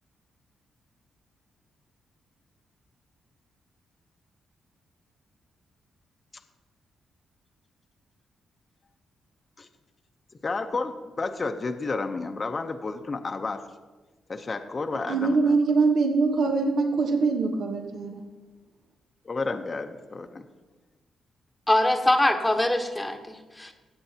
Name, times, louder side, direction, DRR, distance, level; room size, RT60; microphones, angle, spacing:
voice 1, 10.4-13.6 14.3-15.5 19.2-20.4, left 3 dB, 35° left, 5 dB, 0.7 m, -31 dB
voice 2, 15.1-18.2, right 4 dB, 70° right, 3 dB, 1.1 m, -23 dB
voice 3, 21.7-23.7, left 1 dB, 10° left, 5 dB, 1.1 m, -23 dB
18.5 x 7.9 x 2.8 m, 1.2 s
cardioid pair, 75°, 0 cm